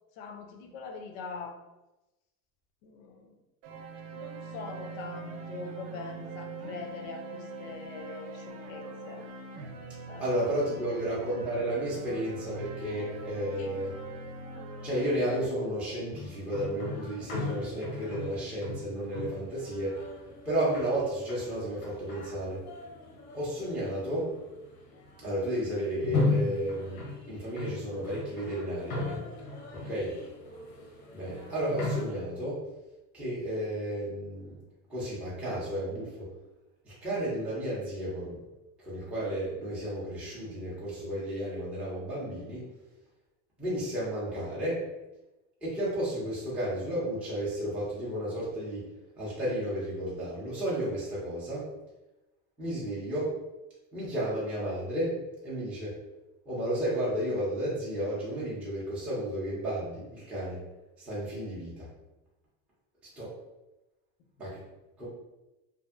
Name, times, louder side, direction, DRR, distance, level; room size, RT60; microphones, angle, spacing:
voice 1, 0.2-1.6 2.8-3.4 4.1-9.3 10.1-11.0 13.6-13.8 29.8-30.0, left 4 dB, 60° left, 5 dB, 0.5 m, -43 dB
sound 1, 3.6-15.5, right 3 dB, 75° right, 0.7 m, -42 dB
voice 2, 10.2-13.9 14.8-20.0 20.4-22.6 23.3-24.3 25.2-29.2 29.7-30.2 31.1-32.6 33.1-34.6 34.9-36.3 36.8-38.4 38.8-42.7 43.6-44.8 45.6-48.8 49.2-51.7 52.6-53.3 53.9-55.9 56.5-60.6 61.0-61.9 63.2-63.3 64.4-64.6 65.0-65.1, right 1 dB, 5° right, -9 dB, 0.4 m, -32 dB
sound 2, 16.1-32.1, left 3 dB, 85° left, 0.9 m, -37 dB
2.6 x 2.4 x 2.4 m, 1.0 s
supercardioid pair, 150°, 44 cm